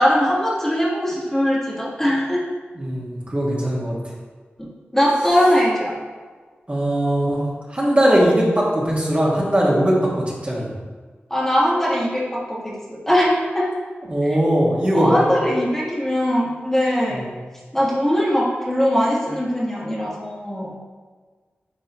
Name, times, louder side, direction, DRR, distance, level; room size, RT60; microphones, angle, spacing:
voice 1, 0.0-2.4 4.6-6.0 11.3-13.7 14.9-17.2 17.7-20.7, equal, 10° left, -6 dB, 1.5 m, -20 dB
voice 2, 2.8-3.9 6.7-10.7 14.1-15.2 17.1-17.3, right 1 dB, 35° right, -5 dB, 1.7 m, -20 dB
9.6 x 3.8 x 3.0 m, 1.4 s
wide cardioid pair, 65°, 4 cm